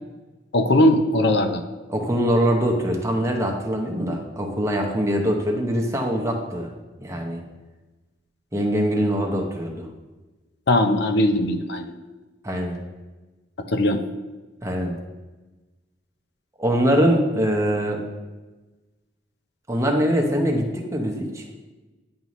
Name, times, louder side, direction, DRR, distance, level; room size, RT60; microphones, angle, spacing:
voice 1, 0.5-1.6 10.7-11.9 13.7-14.0, left 1 dB, 60° left, 7 dB, 0.5 m, -19 dB
voice 2, 1.9-6.7 7.0-7.4 8.5-9.9 12.4-12.8 14.6-15.0 16.6-18.1 19.7-21.4, equal, 15° right, 1 dB, 0.8 m, -23 dB
9.5 x 5.4 x 3.1 m, 1.2 s
head